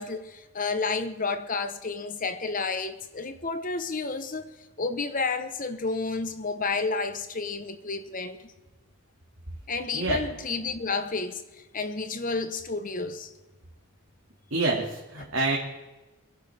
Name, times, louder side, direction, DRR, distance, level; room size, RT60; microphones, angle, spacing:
voice 1, 0.0-4.5 4.8-8.5 9.7-11.4 11.7-13.3, left 4 dB, 40° left, 1.1 m, -31 dB
voice 2, 14.5-15.6, right 2 dB, 60° right, 2.3 m, -27 dB
26.0 x 11.0 x 3.5 m
head